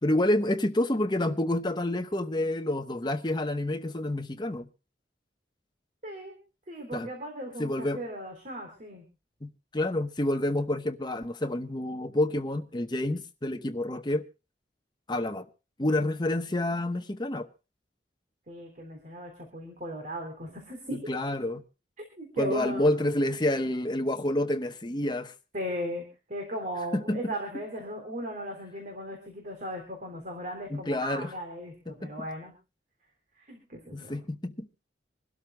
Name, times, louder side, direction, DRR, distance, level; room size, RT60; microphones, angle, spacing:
voice 1, 0.0-4.7 6.9-7.1 7.6-8.0 9.4-14.2 15.1-15.5 15.8-17.5 20.9-21.6 22.4-25.3 26.9-27.3 30.7-31.3 31.9-32.1 33.9-34.7, left 1 dB, 25° left, 8 dB, 0.9 m, -28 dB
voice 2, 6.0-6.4 6.7-9.1 18.5-21.1 22.0-23.0 25.5-32.5 33.4-34.1, equal, 45° right, 2 dB, 3.5 m, -37 dB
26.5 x 12.5 x 2.2 m, 0.31 s
head